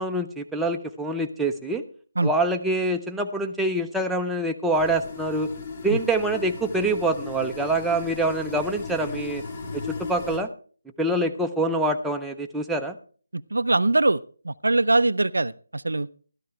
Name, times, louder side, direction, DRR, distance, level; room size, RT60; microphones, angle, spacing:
voice 1, 0.0-1.8 2.2-5.5 5.8-9.4 9.7-10.5 11.0-13.0, right 2 dB, ahead, 0.6 m, -25 dB
sound 1, 4.7-10.4, left 4 dB, 35° left, 3.0 m, -36 dB
voice 2, 13.5-14.2 14.5-16.1, right 2 dB, 70° right, 0.4 m, -22 dB
13.5 x 13.0 x 3.3 m
figure-of-eight pair, 155°, 0 cm